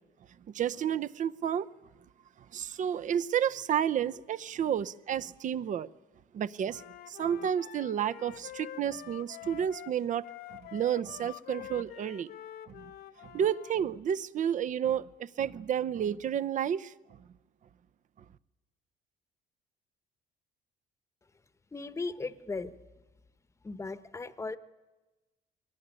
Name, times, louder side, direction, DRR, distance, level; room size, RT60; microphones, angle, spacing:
voice 1, 0.5-1.7 2.5-5.9 6.3-10.3 10.5-12.3 12.7-12.8 13.3-16.9, right 9 dB, 50° right, 0.7 m, -31 dB
Wind instrument woodwind instrument, 6.7-13.7, left 13 dB, 70° left, 0.9 m, -46 dB
voice 2, 21.7-22.8 23.6-24.6, left 3 dB, 15° left, 1.0 m, -37 dB
23.0 x 19.0 x 9.8 m
cardioid pair, 110°, 17 cm